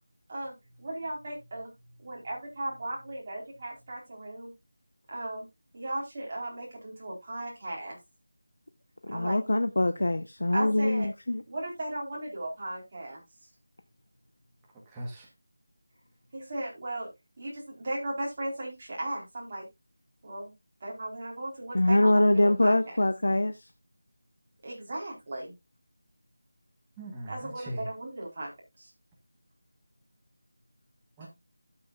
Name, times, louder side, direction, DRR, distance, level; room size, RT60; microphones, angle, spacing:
voice 1, 0.8-1.7 2.0-4.5 5.1-5.4 5.7-8.0 9.1-9.4 10.5-11.1 11.5-13.2 16.3-17.1 17.4-19.6 20.2-20.5 20.8-22.7 24.6-25.5 27.3-28.5, right 1 dB, 30° right, 4.3 m, -36 dB
voice 2, 9.0-11.4 21.7-23.7, left 1 dB, 85° left, 0.9 m, -24 dB
voice 3, 14.7-15.3 27.0-27.9 31.2-31.3, right 1 dB, 10° right, 1.3 m, -40 dB
13.0 x 7.9 x 2.5 m
figure-of-eight pair, 175°, 0 cm